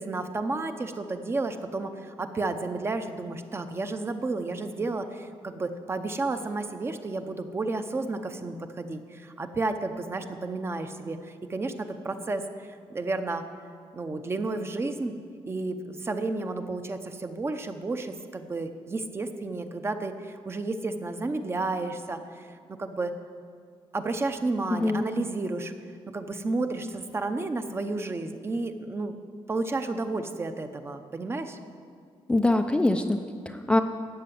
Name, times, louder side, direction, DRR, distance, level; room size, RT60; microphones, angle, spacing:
voice 1, 0.0-13.4 13.9-15.2 15.5-22.5 22.8-23.1 23.9-25.7 26.1-29.1 29.5-31.6, right 3 dB, 25° right, 8 dB, 0.7 m, -32 dB
voice 2, 24.7-25.0 32.3-33.8, left 2 dB, 10° left, 5 dB, 0.4 m, -24 dB
13.5 x 8.0 x 9.4 m, 2.2 s
wide cardioid pair, 175°, 10 cm